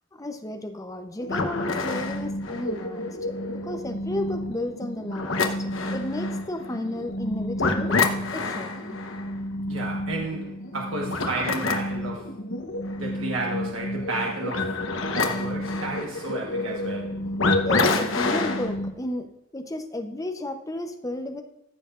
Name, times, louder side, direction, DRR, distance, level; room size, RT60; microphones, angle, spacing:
voice 1, 0.1-8.0 8.3-9.0 17.6-21.4, left 1 dB, 15° left, 6 dB, 0.7 m, -33 dB
sound 1, 1.2-18.9, left 2 dB, 70° left, 1.0 m, -28 dB
voice 2, 9.7-12.3 12.9-14.8 15.0-17.2, right 2 dB, 85° right, -1 dB, 1.3 m, -32 dB
15.0 x 6.9 x 2.5 m, 0.91 s
head